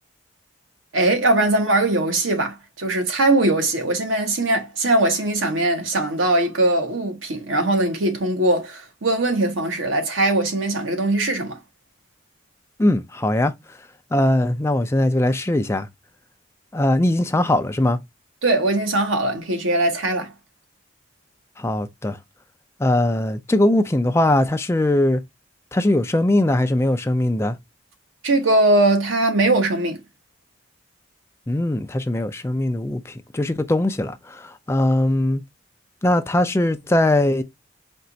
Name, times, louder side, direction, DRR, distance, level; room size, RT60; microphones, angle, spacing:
voice 1, 0.9-11.6 18.4-20.3 28.2-30.0, right 2 dB, 85° right, 1.1 m, -20 dB
voice 2, 12.8-13.5 14.1-15.9 16.7-18.0 21.6-22.2 22.8-25.2 25.7-27.6 31.5-35.4 36.0-37.4, left 1 dB, 15° left, 0.3 m, -20 dB
4.4 x 2.4 x 3.9 m
head